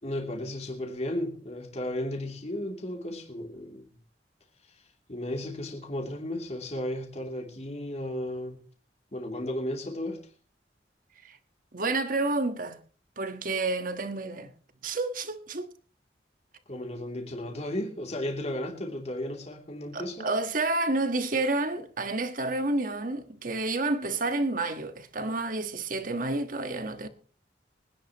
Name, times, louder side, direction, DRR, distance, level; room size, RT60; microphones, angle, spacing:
voice 1, 0.0-3.9 5.1-8.6 9.1-10.3 16.7-20.3, left 1 dB, 40° left, 2.9 m, -34 dB
voice 2, 11.7-12.8 13.2-14.5 14.8-15.7 19.9-27.1, right 2 dB, 50° right, 1.4 m, -29 dB
25.0 x 10.0 x 3.0 m
head